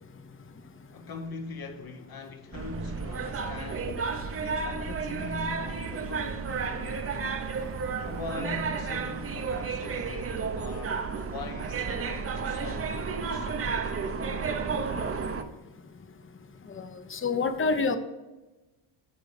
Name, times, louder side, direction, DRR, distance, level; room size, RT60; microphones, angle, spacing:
voice 1, 0.9-4.0 4.4-7.4 8.0-14.4 16.7-16.8, left 4 dB, 45° left, 1.1 m, -42 dB
sound 1, 2.5-15.4, right 5 dB, 30° right, 0.9 m, -32 dB
voice 2, 16.8-18.0, left 4 dB, 25° left, 0.9 m, -27 dB
10.0 x 4.0 x 6.6 m
cardioid pair, 105°, 49 cm